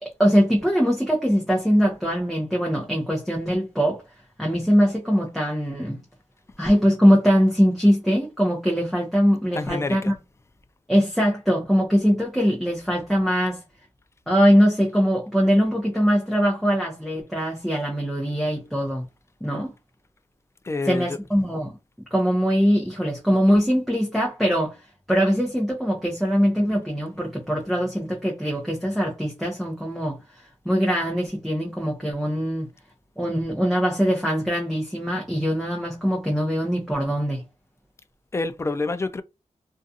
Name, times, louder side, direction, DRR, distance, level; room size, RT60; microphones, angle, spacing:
voice 1, 0.0-4.0 4.4-6.0 6.6-10.1 10.9-13.6 14.3-19.1 19.4-19.7 20.9-21.7 22.1-24.8 25.1-30.2 30.6-32.7 33.2-37.4, equal, ahead, 0.7 m, -22 dB
voice 2, 9.5-10.1 20.6-21.2 38.3-39.2, left 3 dB, 20° left, 0.3 m, -27 dB
2.4 x 2.3 x 2.6 m
wide cardioid pair, 85°, 13 cm